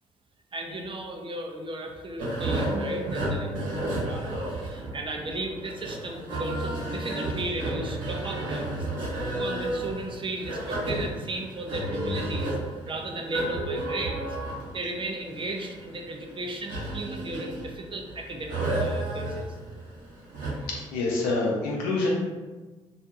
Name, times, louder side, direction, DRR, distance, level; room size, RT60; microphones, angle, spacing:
voice 1, 0.5-4.3 4.6-12.6 12.9-14.4 14.7-19.6, right 1 dB, 35° right, 2 dB, 0.5 m, -35 dB
sound 1, 2.2-20.8, right 1 dB, 60° right, 0.9 m, -32 dB
voice 2, 20.7-22.1, left 3 dB, 80° left, -3 dB, 0.6 m, -27 dB
2.4 x 2.2 x 2.7 m, 1.3 s
hypercardioid pair, 45°, 15 cm